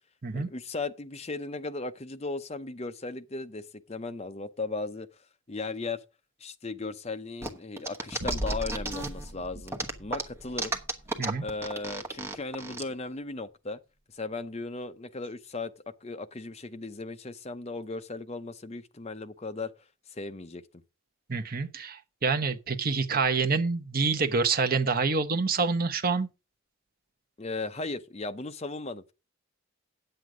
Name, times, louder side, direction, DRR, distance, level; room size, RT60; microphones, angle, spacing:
voice 1, 0.3-5.1 5.5-6.0 6.4-10.7 11.4-13.8 14.1-15.7 16.0-19.7 20.1-20.6 27.4-29.0, left 3 dB, 30° left, 0.6 m, -36 dB
sound 1, 7.4-9.3 9.7-12.8, right 2 dB, 10° right, 1.1 m, -33 dB
sound 2, 8.2-13.0, equal, 60° right, 1.6 m, -40 dB
voice 2, 21.3-26.3, right 4 dB, 40° right, 0.9 m, -27 dB
9.3 x 7.9 x 4.9 m
head